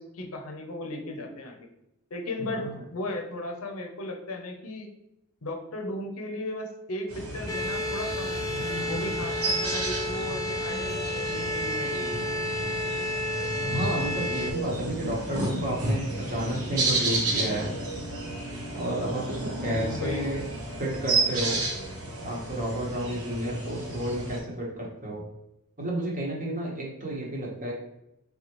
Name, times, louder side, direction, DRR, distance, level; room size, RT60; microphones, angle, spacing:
voice 1, 0.0-1.7 2.1-2.7 2.9-4.9 5.4-8.4 8.9-12.1 19.6-20.3, left 1 dB, 70° left, 3 dB, 0.7 m, -36 dB
sound 1, 7.1-24.4, right 2 dB, 75° right, 1.3 m, -32 dB
sound 2, 7.5-14.5, left 1 dB, 15° left, 0.5 m, -31 dB
voice 2, 13.7-17.7 18.7-20.4 20.8-21.6 22.2-25.2 25.8-27.7, right 1 dB, 35° right, -3 dB, 1.1 m, -31 dB
4.1 x 3.5 x 3.0 m, 0.86 s
head